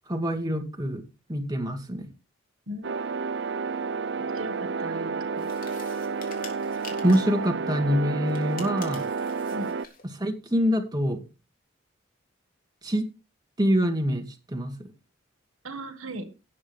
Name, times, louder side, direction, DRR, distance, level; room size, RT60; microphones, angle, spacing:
voice 1, 0.1-1.0 1.3-2.1 7.0-9.0 10.1-11.2 12.8-13.1 13.6-14.9, equal, 20° right, 4 dB, 2.2 m, -25 dB
sound 1, 2.8-9.9, right 5 dB, 55° right, 0.6 m, -31 dB
voice 2, 4.3-5.5 9.5-9.7 15.6-16.3, right 1 dB, 80° right, 9 dB, 1.7 m, -37 dB
sound 2, 5.4-7.4 8.3-10.1, left 5 dB, 40° left, 3.2 m, -46 dB
17.5 x 7.5 x 3.4 m, 0.29 s
head